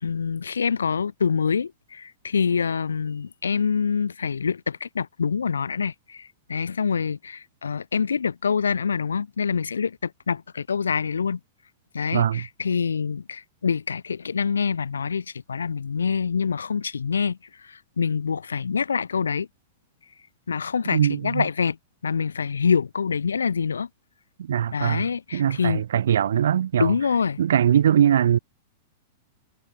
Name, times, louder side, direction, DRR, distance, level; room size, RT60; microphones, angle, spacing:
voice 1, 0.0-11.4 11.9-19.5 20.5-21.8 22.0-23.9 24.7-25.8 26.8-27.4, left 6 dB, 80° left, 3.2 m, -26 dB
voice 2, 12.1-12.4 20.9-21.4 24.5-25.0 25.3-26.9 27.4-28.4, right 9 dB, 70° right, 1.3 m, -21 dB
figure-of-eight pair, 100°, 0 cm